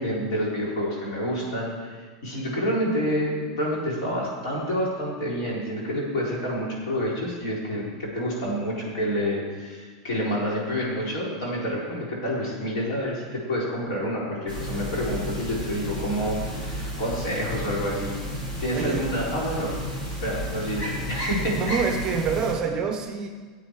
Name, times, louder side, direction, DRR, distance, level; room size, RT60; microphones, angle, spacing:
voice 1, 0.0-18.1 18.6-19.7 20.2-21.6, equal, 60° left, -4 dB, 4.2 m, -28 dB
sound 1, 14.5-22.5, equal, 35° left, 3.3 m, -32 dB
voice 2, 18.7-19.1 21.6-23.3, right 5 dB, 25° right, 4 dB, 0.8 m, -26 dB
14.5 x 8.2 x 4.8 m, 1.5 s
supercardioid pair, 165°, 3 cm